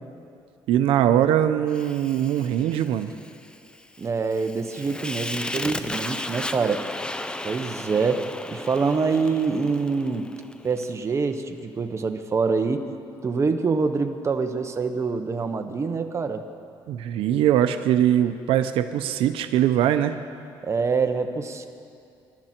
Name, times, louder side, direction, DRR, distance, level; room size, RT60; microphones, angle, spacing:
voice 1, 0.7-3.1 16.9-20.2, right 11 dB, 85° right, 9 dB, 0.7 m, -21 dB
Fire, 1.7-10.9, left 1 dB, 10° left, 0.6 m, -35 dB
voice 2, 4.0-6.8 7.4-10.3 10.6-12.8 13.2-16.4 20.6-21.7, right 4 dB, 30° right, 6 dB, 1.1 m, -25 dB
26.0 x 12.5 x 4.5 m, 2.5 s
cardioid pair, 120°, 9 cm